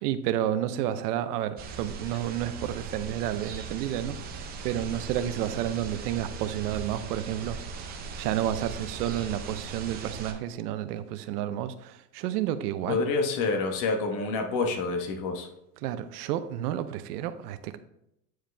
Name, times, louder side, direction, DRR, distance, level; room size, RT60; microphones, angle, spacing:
voice 1, 0.0-7.6 8.2-13.0 15.8-17.8, right 11 dB, 80° right, 11 dB, 0.8 m, -31 dB
sound 1, 1.6-10.3, right 4 dB, 20° right, 0.5 m, -39 dB
voice 2, 12.9-15.5, left 4 dB, 40° left, 4 dB, 1.2 m, -27 dB
9.0 x 4.8 x 3.4 m, 0.81 s
supercardioid pair, 155°, 46 cm